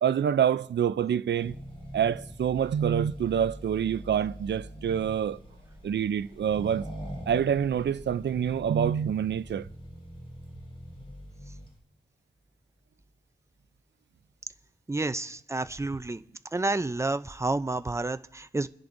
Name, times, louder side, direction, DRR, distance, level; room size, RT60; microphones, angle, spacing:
voice 1, 0.0-1.6 1.9-5.4 5.8-6.8 7.3-9.7, right 8 dB, 75° right, 0.4 m, -26 dB
Accelerating revving vroom, 1.4-11.8, equal, 30° left, 3.9 m, -43 dB
voice 2, 14.9-16.2 16.5-18.7, right 2 dB, 15° right, 0.5 m, -30 dB
28.5 x 10.5 x 2.6 m
wide cardioid pair, 65°, 18 cm